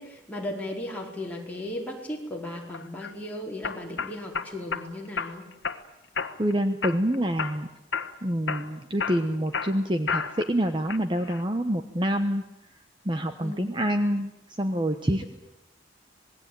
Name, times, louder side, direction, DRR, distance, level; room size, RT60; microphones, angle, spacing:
voice 1, 0.0-5.4 13.4-13.7, left 1 dB, 10° left, -2 dB, 4.8 m, -36 dB
sound 1, 2.7-3.1 3.6-4.8 5.2-5.8 6.1-6.5 6.8-7.6 7.9-8.2 8.5-10.5 10.9-11.4, left 5 dB, 70° left, 1.4 m, -31 dB
voice 2, 6.4-7.7 8.2-12.4 13.0-15.2, equal, 25° right, 7 dB, 1.1 m, -27 dB
27.0 x 20.0 x 9.1 m, 0.92 s
head